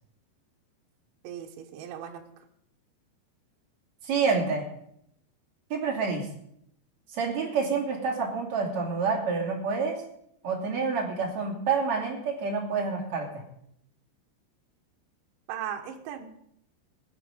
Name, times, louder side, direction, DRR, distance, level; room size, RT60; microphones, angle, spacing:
voice 1, 1.2-2.2 15.5-16.3, right 9 dB, 70° right, 3 dB, 3.5 m, -37 dB
voice 2, 4.0-4.6 5.7-6.3 7.1-9.9 10.4-13.3, right 5 dB, 40° right, 0 dB, 3.5 m, -28 dB
16.5 x 11.5 x 5.3 m, 0.73 s
omnidirectional pair, 5.7 m